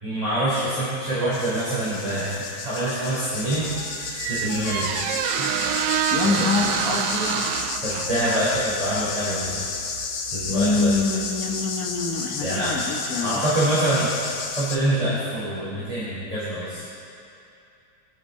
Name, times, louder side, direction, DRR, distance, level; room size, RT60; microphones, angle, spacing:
voice 1, 0.0-3.7 4.0-4.9 5.4-5.5 6.2-6.4 7.8-9.7 10.3-10.9 12.4-12.7 13.2-14.1 14.6-16.8, right 1 dB, 20° right, -10 dB, 3.9 m, -25 dB
sound 1, 1.3-14.8, left 5 dB, 85° left, 1.8 m, -32 dB
Squeak, 3.4-12.2, right 10 dB, 75° right, 1.2 m, -29 dB
voice 2, 6.1-7.5 10.5-13.4, left 3 dB, 55° left, 0 dB, 1.8 m, -25 dB
25.0 x 8.7 x 4.3 m, 2.7 s
omnidirectional pair, 2.0 m